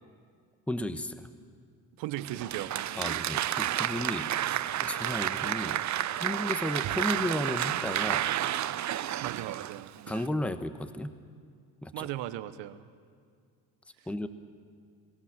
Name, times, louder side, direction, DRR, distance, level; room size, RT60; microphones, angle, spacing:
voice 1, 0.7-1.3 3.0-5.8 6.1-8.3 10.1-11.2 11.8-12.1 14.1-14.3, left 1 dB, 5° left, 10 dB, 1.0 m, -34 dB
voice 2, 2.0-2.7 9.2-9.9 11.9-12.9 14.0-14.3, right 14 dB, 85° right, 13 dB, 0.9 m, -37 dB
Applause, 2.2-10.3, right 12 dB, 45° right, 0.5 m, -31 dB
22.5 x 15.5 x 7.4 m, 2.1 s
supercardioid pair, 70°, 42 cm